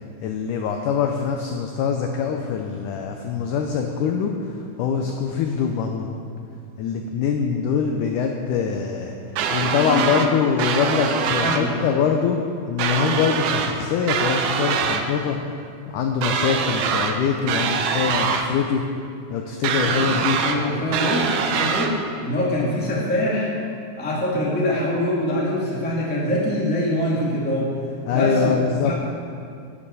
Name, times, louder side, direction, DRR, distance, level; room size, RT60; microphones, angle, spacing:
voice 1, 0.2-4.3 4.8-6.1 6.8-9.2 9.5-12.4 12.7-15.4 15.9-18.8 19.3-20.4 28.1-28.9, left 6 dB, 80° left, 3 dB, 1.8 m, -23 dB
sound 1, 9.4-10.3 10.6-11.6 12.8-13.7 14.1-15.0 16.2-17.1 17.5-18.5 19.6-20.6 20.9-21.9, right 6 dB, 85° right, 1.7 m, -23 dB
voice 2, 11.4-11.7 20.4-21.9 22.2-23.5 24.0-27.7 28.1-29.0, left 1 dB, 10° left, -5 dB, 0.6 m, -24 dB
9.8 x 7.7 x 6.8 m, 2.4 s
omnidirectional pair, 4.4 m